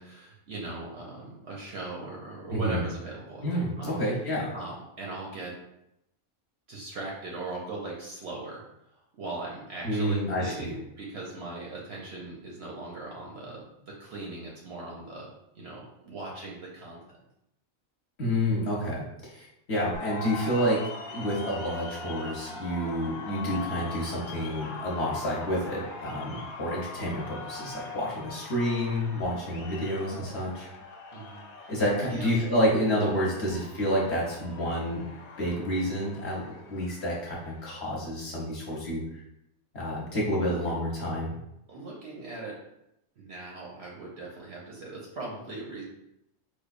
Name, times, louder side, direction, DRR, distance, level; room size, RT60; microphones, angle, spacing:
voice 1, 0.0-4.0 4.5-5.5 6.7-8.6 9.2-15.3 15.5-17.0 31.1-31.7 32.1-32.4 40.6-40.7 41.7-42.6 43.2-45.8, right 2 dB, 60° right, -3 dB, 0.7 m, -39 dB
voice 2, 2.5-2.8 3.4-4.5 9.8-10.7 18.2-20.8 21.1-30.7 31.7-35.0 35.4-39.0 39.7-41.4, equal, 55° left, -4 dB, 1.0 m, -29 dB
sound 1, 19.9-37.7, left 4 dB, 80° left, 1.0 m, -42 dB
4.5 x 2.3 x 2.4 m, 0.82 s
omnidirectional pair, 1.5 m